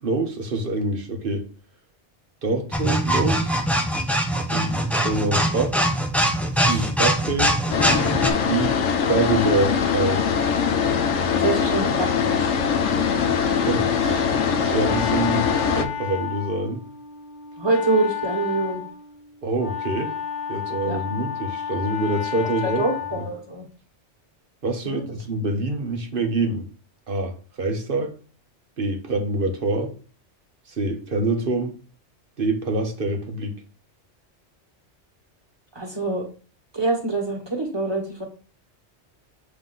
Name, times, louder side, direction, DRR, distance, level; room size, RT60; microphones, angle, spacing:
voice 1, 0.0-1.4 2.4-3.6 4.5-5.8 6.5-7.7 8.4-8.8 9.1-10.3 13.3-14.3 14.6-16.8 19.4-20.2 20.5-22.9 24.6-26.7 27.1-28.1 28.8-29.9 30.7-31.7 32.4-33.6, right 2 dB, 50° right, 1.3 m, -26 dB
sound 1, 2.7-8.3, equal, ahead, 0.5 m, -22 dB
sound 2, 7.7-15.9, left 6 dB, 85° left, 1.1 m, -22 dB
voice 2, 11.4-12.4 17.6-18.8 20.8-21.0 22.6-23.6 24.8-25.2 35.7-36.2 36.7-38.2, right 3 dB, 20° right, 1.9 m, -25 dB
Wind instrument woodwind instrument, 14.3-23.4, left 9 dB, 65° left, 1.7 m, -32 dB
7.3 x 3.6 x 3.8 m
omnidirectional pair, 1.2 m